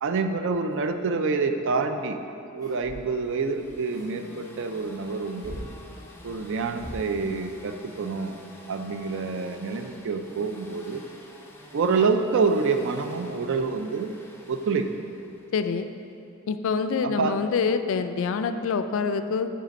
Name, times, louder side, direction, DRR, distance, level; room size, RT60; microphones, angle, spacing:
voice 1, 0.0-2.2 2.5-5.6 6.2-8.4 8.7-11.0 11.7-14.1 14.5-14.9 17.0-17.4, right 4 dB, 60° right, 7 dB, 0.4 m, -27 dB
sound 1, 2.6-3.1 3.6-4.1 5.4-5.7 6.8-7.0, equal, 20° right, 0.9 m, -40 dB
sound 2, 3.0-15.9, left 2 dB, 10° left, 0.5 m, -49 dB
voice 2, 15.5-15.9 16.5-19.5, left 5 dB, 65° left, 10 dB, 0.3 m, -26 dB
5.6 x 5.0 x 5.2 m, 2.7 s
head